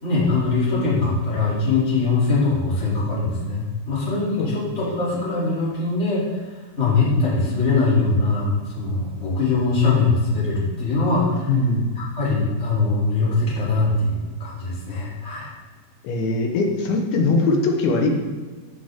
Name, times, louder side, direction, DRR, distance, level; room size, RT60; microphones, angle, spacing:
voice 1, 0.0-6.4 6.8-11.5 12.0-15.5, left 3 dB, 20° left, -8 dB, 2.7 m, -22 dB
voice 2, 4.4-4.9 11.5-11.9 16.0-18.1, left 3 dB, 90° left, 1 dB, 3.6 m, -21 dB
14.0 x 6.6 x 3.7 m, 1.4 s
omnidirectional pair, 5.1 m